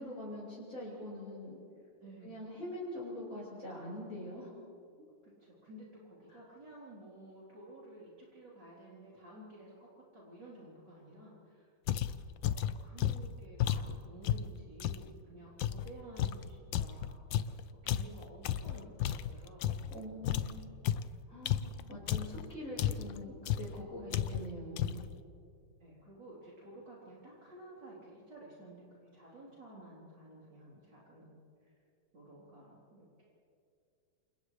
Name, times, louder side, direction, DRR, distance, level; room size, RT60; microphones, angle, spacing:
voice 1, 0.0-1.6 2.2-4.5 19.9-20.7 21.3-25.1, left 1 dB, 40° left, -7 dB, 5.8 m, -44 dB
voice 2, 2.0-2.4 5.2-11.7 12.5-17.2 17.8-20.8 21.1-21.2 21.9-22.3 24.0-24.5 25.8-28.9 29.1-31.7 32.1-33.3, right 1 dB, 50° right, -7 dB, 4.5 m, -53 dB
Footstep Water, 11.9-15.1 15.6-20.0 20.2-22.4 22.8-23.2 23.4-23.8 24.1-24.5 24.8-25.2, left 10 dB, 70° left, 1.3 m, -33 dB
29.0 x 27.5 x 3.3 m, 2.5 s
omnidirectional pair, 2.4 m